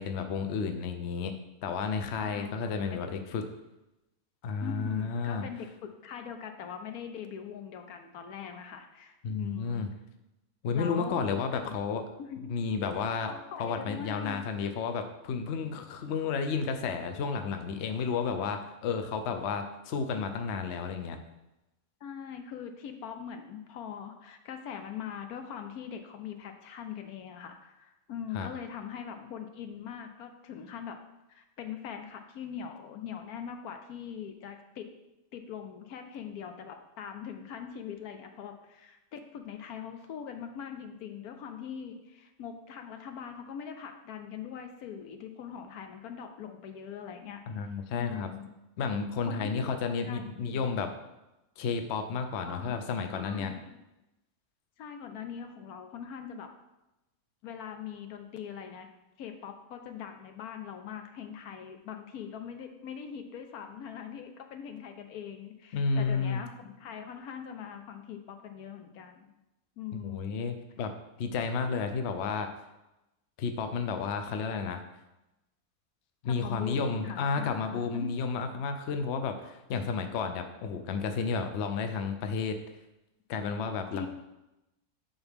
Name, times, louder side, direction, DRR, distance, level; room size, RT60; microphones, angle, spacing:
voice 1, 0.0-1.3 1.6-3.4 4.4-5.5 9.2-9.9 10.6-12.0 12.5-13.3 13.6-21.2 28.3-28.5 47.5-48.3 48.8-50.9 51.6-53.5 65.7-66.4 70.0-70.9 71.2-72.5 73.4-74.8 76.2-82.6 83.3-84.1, left 5 dB, 55° left, 7 dB, 0.8 m, -32 dB
voice 2, 2.2-2.5 2.8-3.0 4.6-9.8 10.7-11.7 12.2-12.6 13.3-14.7 22.0-31.0 31.3-34.9 35.3-47.4 47.9-48.5 49.3-50.7 52.4-52.8 53.1-53.7 54.8-56.5 57.4-58.9 59.2-69.3 69.8-70.4 76.3-78.1 83.9-84.1, left 8 dB, 75° left, 6 dB, 1.2 m, -42 dB
11.0 x 4.0 x 3.5 m, 0.95 s
omnidirectional pair, 1.6 m